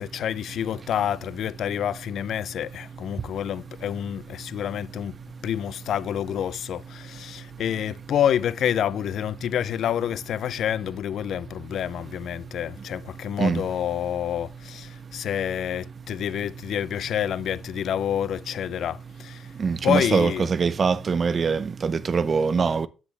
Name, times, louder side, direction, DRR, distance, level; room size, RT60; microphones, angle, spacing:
voice 1, 0.0-5.2 5.4-19.5 19.8-20.5, left 10 dB, 70° left, 0.4 m, -28 dB
voice 2, 19.6-22.9, right 5 dB, 40° right, 0.7 m, -23 dB
9.9 x 9.8 x 3.3 m
cardioid pair, 90°, 0 cm